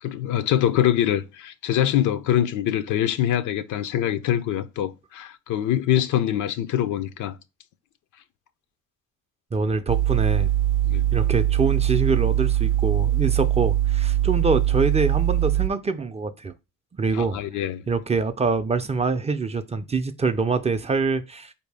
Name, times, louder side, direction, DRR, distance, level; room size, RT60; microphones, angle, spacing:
voice 1, 0.0-7.3 10.9-11.0 17.1-17.8, left 11 dB, 80° left, 0.5 m, -24 dB
voice 2, 9.5-10.5 11.1-16.5 17.0-17.4 17.9-21.5, right 4 dB, 20° right, 0.4 m, -25 dB
sound 1, 9.9-15.7, right 13 dB, 85° right, 0.5 m, -22 dB
4.4 x 2.7 x 3.3 m
cardioid pair, 90°, 30 cm